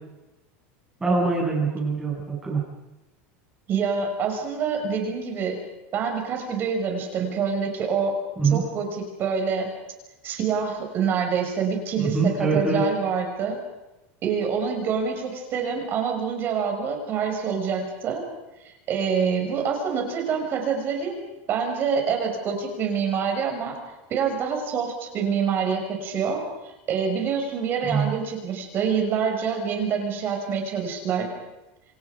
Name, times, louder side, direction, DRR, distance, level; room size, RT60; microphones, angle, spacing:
voice 1, 1.0-2.6 8.4-8.6 12.0-12.8 27.8-28.1, right 4 dB, 10° right, -2 dB, 7.4 m, -23 dB
voice 2, 3.7-5.6 5.9-8.2 8.5-9.7 10.2-13.6 14.2-18.2 18.6-21.2 21.5-23.8 24.1-26.4 26.9-31.3, right 6 dB, 30° right, 3 dB, 6.1 m, -26 dB
28.0 x 26.5 x 5.2 m, 1.0 s
supercardioid pair, 165°, 7 cm